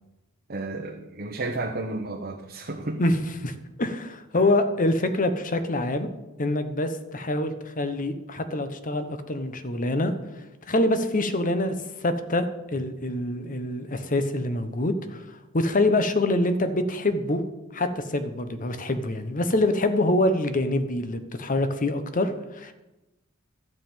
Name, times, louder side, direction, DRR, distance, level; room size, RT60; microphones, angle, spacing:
voice 1, 0.5-3.0, right 2 dB, 50° right, 1 dB, 1.0 m, -32 dB
voice 2, 3.0-6.1 6.4-10.1 10.7-12.5 12.7-17.4 17.7-22.7, left 1 dB, 40° left, 9 dB, 1.0 m, -25 dB
12.5 x 5.5 x 9.0 m, 1.0 s
head